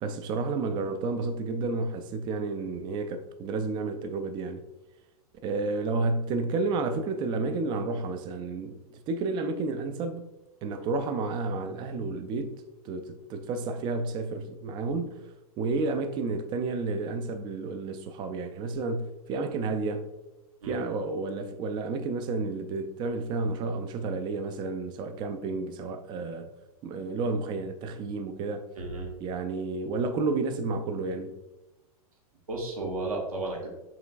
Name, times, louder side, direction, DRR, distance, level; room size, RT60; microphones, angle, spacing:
voice 1, 0.0-4.6 5.4-8.8 9.1-10.3 10.6-15.2 15.6-20.1 20.6-26.5 26.8-28.7 29.2-31.3, right 3 dB, 25° right, 0.4 m, -31 dB
voice 2, 28.8-29.1 32.5-33.7, right 2 dB, 65° right, 1.1 m, -33 dB
5.7 x 3.7 x 2.4 m
figure-of-eight pair, 95°, 19 cm